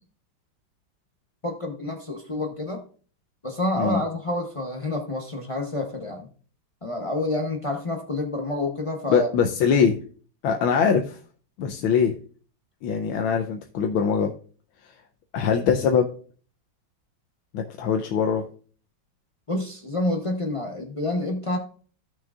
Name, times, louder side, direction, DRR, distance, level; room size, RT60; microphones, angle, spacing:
voice 1, 1.4-2.8 3.4-6.3 6.8-9.3 19.5-21.6, left 1 dB, 50° left, 2 dB, 0.3 m, -28 dB
voice 2, 9.1-10.0 10.4-11.2 11.6-12.2 12.8-14.3 15.3-16.1 17.5-18.5, left 6 dB, 85° left, 4 dB, 1.5 m, -22 dB
15.0 x 6.1 x 2.4 m, 0.42 s
omnidirectional pair, 2.2 m